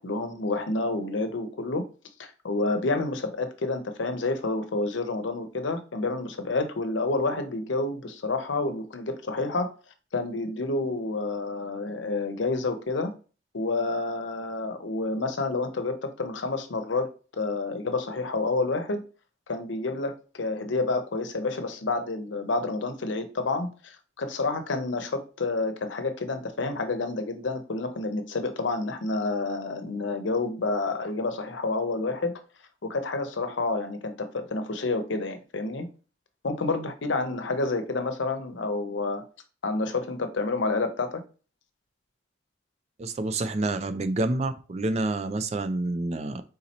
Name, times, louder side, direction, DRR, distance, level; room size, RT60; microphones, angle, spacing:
voice 1, 0.0-1.8 2.2-9.7 10.1-13.1 13.5-19.0 19.5-32.3 32.8-35.9 36.4-39.2 39.6-41.2, left 3 dB, 90° left, 0.7 m, -29 dB
voice 2, 43.0-46.4, right 2 dB, 35° right, 0.4 m, -28 dB
3.8 x 2.9 x 4.1 m
head